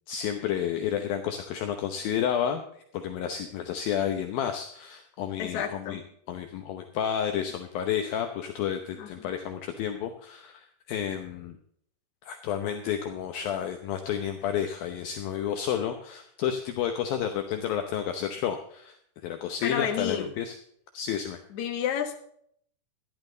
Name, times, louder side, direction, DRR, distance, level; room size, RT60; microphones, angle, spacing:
voice 1, 0.1-6.0 6.3-11.6 12.2-19.0 19.2-20.5 20.9-21.4, left 9 dB, 70° left, 6 dB, 2.5 m, -31 dB
voice 2, 5.4-6.0 9.0-9.3 19.6-20.3 21.5-22.3, left 8 dB, 55° left, 4 dB, 2.5 m, -31 dB
14.0 x 11.5 x 3.9 m, 0.66 s
omnidirectional pair, 4.7 m